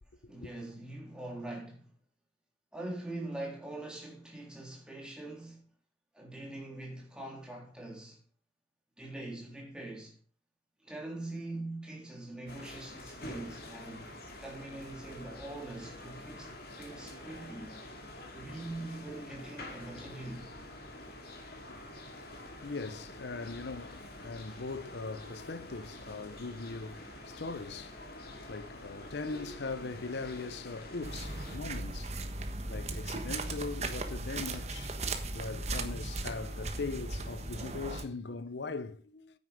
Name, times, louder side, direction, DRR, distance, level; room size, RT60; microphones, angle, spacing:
voice 1, 0.3-1.9 2.7-5.6 6.1-8.2 9.0-10.2 10.8-14.1 14.4-17.8 18.3-20.5, right 2 dB, 5° right, 3.5 m, -43 dB
sound 1, 12.5-31.6, left 1 dB, 55° left, 2.5 m, -47 dB
voice 2, 22.1-28.0 28.5-34.9 35.3-39.4, left 3 dB, 75° left, 0.7 m, -40 dB
sound 2, 31.0-38.0, right 2 dB, 35° right, 1.4 m, -37 dB
9.6 x 9.5 x 5.2 m
head